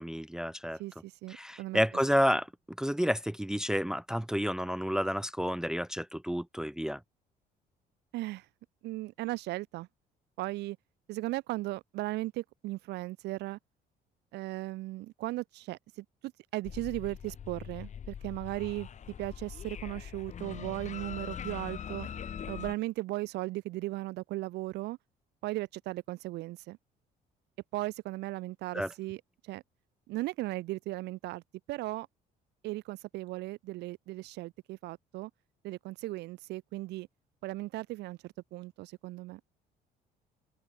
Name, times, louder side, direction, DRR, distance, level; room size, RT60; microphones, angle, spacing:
voice 1, 0.0-0.8 1.3-7.0 28.7-28.9, equal, 5° right, 0.6 m, -30 dB
voice 2, 0.8-1.8 8.1-8.5 8.8-9.9 10.4-10.8 11.1-13.6 14.3-18.9 19.2-22.1 22.5-25.0 25.4-26.8 27.7-29.6 30.1-31.4 31.7-32.1 32.6-35.3 35.6-37.1 37.4-39.4, right 18 dB, 85° right, 1.9 m, -37 dB
sound 1, 16.6-22.8, left 8 dB, 45° left, 3.1 m, -42 dB
open air
cardioid pair, 110°, 17 cm